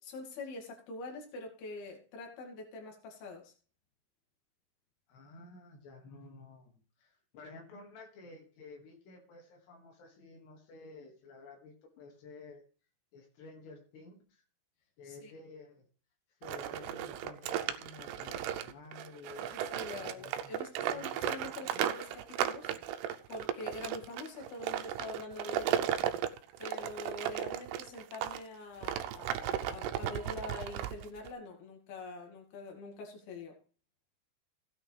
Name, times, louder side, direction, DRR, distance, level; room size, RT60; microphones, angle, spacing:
voice 1, 0.0-3.5 15.0-15.3 19.5-22.7 23.3-25.8 26.6-33.6, left 3 dB, 70° left, 1 dB, 4.2 m, -45 dB
voice 2, 5.1-12.6 13.1-14.4 15.0-15.9 16.4-19.5 20.0-21.2 21.7-21.9, left 3 dB, 90° left, 1 dB, 4.3 m, -52 dB
sound 1, 16.4-28.4 28.8-31.3, right 10 dB, 90° right, 2.7 m, -35 dB
16.0 x 8.8 x 3.4 m, 0.38 s
omnidirectional pair, 4.6 m